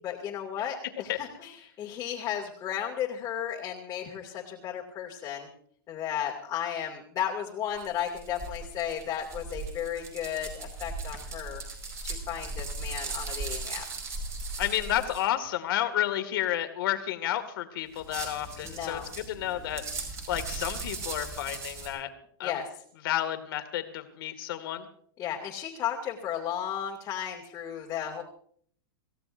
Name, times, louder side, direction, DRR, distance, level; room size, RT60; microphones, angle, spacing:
voice 1, 0.0-5.5 5.9-11.6 12.0-13.9 18.6-19.1 22.4-22.7 25.2-28.2, left 9 dB, 25° left, -2 dB, 2.4 m, -34 dB
sound 1, 7.8-15.2 17.9-21.9, right 3 dB, 20° right, 5.1 m, -38 dB
voice 2, 14.6-19.8 20.3-22.1 22.4-22.5 23.0-24.9, left 12 dB, 65° left, 8 dB, 2.2 m, -31 dB
27.0 x 16.0 x 2.6 m, 0.62 s
supercardioid pair, 150°, 13 cm